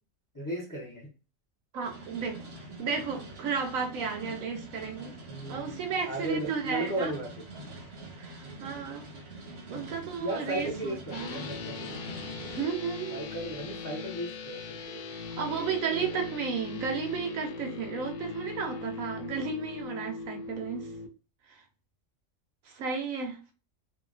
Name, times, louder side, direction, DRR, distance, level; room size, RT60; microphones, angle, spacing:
voice 1, 0.3-1.1 5.3-7.3 10.2-11.9 13.1-15.0, right 1 dB, 20° left, -2 dB, 0.6 m, -35 dB
voice 2, 1.7-2.4 2.8-5.1 5.5-7.1 8.2-9.0 9.7-11.5 12.6-13.3 15.4-20.9 21.5-21.6 22.7-23.4, right 6 dB, 80° right, 3 dB, 1.1 m, -33 dB
sound 1, 1.8-12.6, right 2 dB, 55° right, 1.0 m, -45 dB
sound 2, 11.1-21.1, left 4 dB, 70° left, 0.4 m, -40 dB
3.1 x 2.2 x 2.4 m, 0.34 s
omnidirectional pair, 1.4 m